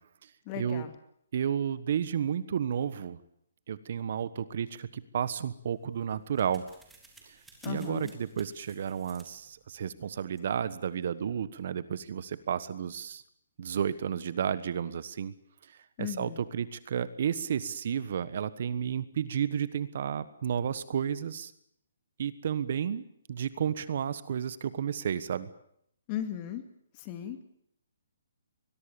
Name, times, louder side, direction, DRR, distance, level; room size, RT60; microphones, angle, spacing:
voice 1, 0.5-0.9 7.6-8.1 16.0-16.4 26.1-26.6 26.9-27.4, left 10 dB, 30° left, 8 dB, 2.5 m, -36 dB
voice 2, 1.3-3.2 3.7-6.6 7.7-13.2 13.6-15.3 16.0-21.5 22.2-23.0 23.3-25.5, right 8 dB, 55° right, 15 dB, 1.3 m, -32 dB
sound 1, 5.6-10.9, right 3 dB, 5° right, 3.5 m, -59 dB
23.5 x 21.5 x 7.0 m, 0.71 s
hypercardioid pair, 155°, 0 cm